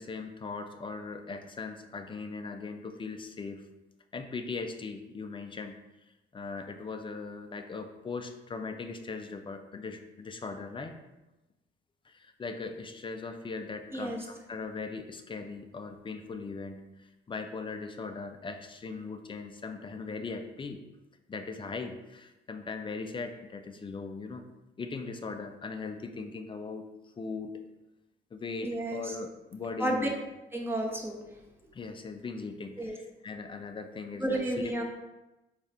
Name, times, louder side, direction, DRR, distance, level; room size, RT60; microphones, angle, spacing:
voice 1, 0.0-3.7 4.1-5.8 6.3-11.0 12.1-20.8 21.3-24.5 24.8-27.6 28.3-30.2 31.7-34.7, left 4 dB, 25° left, 6 dB, 0.4 m, -39 dB
voice 2, 28.6-29.1 29.8-30.1 30.5-31.2 32.8-33.0 34.2-34.8, right 1 dB, 10° right, 0 dB, 0.7 m, -31 dB
4.2 x 2.4 x 3.3 m, 1.0 s
cardioid pair, 90°, 20 cm